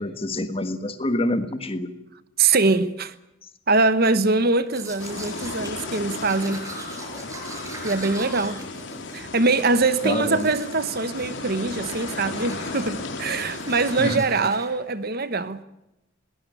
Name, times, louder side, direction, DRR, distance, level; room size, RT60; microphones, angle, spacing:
voice 1, 0.0-1.9 10.0-10.5 14.0-14.2, left 1 dB, 25° left, 1.6 m, -26 dB
voice 2, 2.4-3.1 3.7-6.6 7.8-8.6 9.1-15.6, right 3 dB, 45° right, 1.1 m, -23 dB
Domestic sounds home sounds, 4.6-9.8 10.2-10.9 11.1-11.5 11.8-14.7, right 1 dB, 15° right, 6.6 m, -41 dB
sound 1, 5.0-14.2, left 3 dB, 60° left, 2.6 m, -35 dB
21.5 x 18.5 x 9.0 m
head